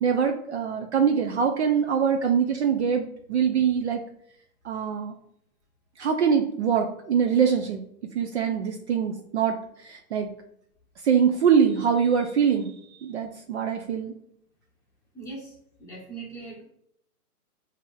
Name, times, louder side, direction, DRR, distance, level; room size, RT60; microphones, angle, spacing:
voice 1, 0.0-4.0 4.6-5.1 6.0-7.8 8.1-10.3 11.0-12.7 13.0-14.1, right 7 dB, 50° right, 4 dB, 0.5 m, -23 dB
voice 2, 15.1-15.5 15.8-16.6, right 3 dB, 5° left, -6 dB, 1.2 m, -40 dB
4.7 x 2.8 x 3.8 m, 0.72 s
hypercardioid pair, 135°, 45 cm